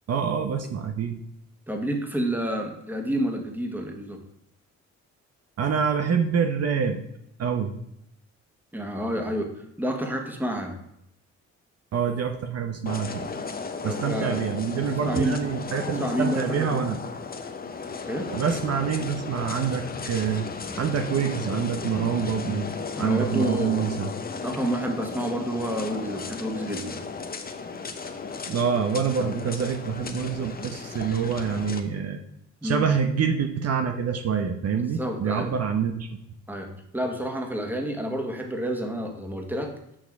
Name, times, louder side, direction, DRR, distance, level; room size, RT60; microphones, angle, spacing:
voice 1, 0.1-1.2 5.6-7.0 7.4-7.7 11.9-13.3 13.8-17.0 18.3-20.5 20.8-22.7 23.0-24.1 28.5-32.2 32.6-36.1, right 7 dB, 55° right, 5 dB, 0.8 m, -26 dB
voice 2, 1.7-4.2 8.7-10.8 13.8-14.4 14.7-15.5 15.8-16.8 18.0-18.3 22.9-23.9 24.4-27.0 29.2-29.3 32.6-32.9 34.7-35.5 36.5-39.8, equal, 5° right, 3 dB, 1.5 m, -29 dB
sound 1, 12.9-31.8, left 4 dB, 30° left, 0.9 m, -35 dB
6.4 x 6.3 x 4.7 m, 0.78 s
cardioid pair, 90°, 30 cm